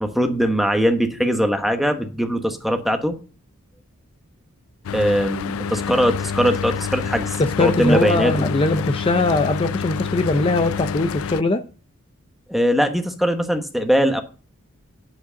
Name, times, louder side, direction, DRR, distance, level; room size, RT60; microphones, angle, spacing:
voice 1, 0.0-3.2 4.9-8.3 12.5-14.2, equal, ahead, 1.2 m, -21 dB
Mechanical fan, 4.8-11.4, left 6 dB, 75° left, 0.4 m, -28 dB
voice 2, 7.4-11.6, left 2 dB, 25° left, 0.6 m, -20 dB
9.2 x 5.4 x 6.8 m
head